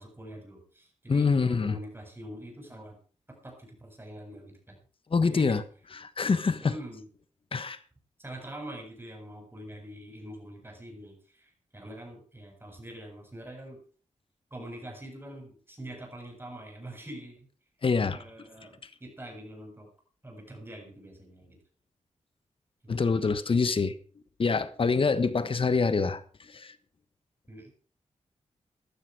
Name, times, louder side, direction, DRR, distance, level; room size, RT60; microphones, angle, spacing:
voice 1, 0.0-3.0 3.3-4.8 5.2-5.6 6.6-7.0 8.2-13.8 14.5-17.5 18.1-19.9 20.2-21.6 22.8-22.9 27.5-27.7, right 1 dB, 20° right, 2 dB, 7.7 m, -44 dB
voice 2, 1.1-1.8 5.1-5.6 6.0-6.7 7.5-7.8 17.8-18.2 22.9-23.9 24.4-26.2 26.5-26.7, left 4 dB, 50° left, 13 dB, 1.4 m, -25 dB
15.5 x 12.0 x 4.9 m, 0.42 s
cardioid pair, 85°, 12 cm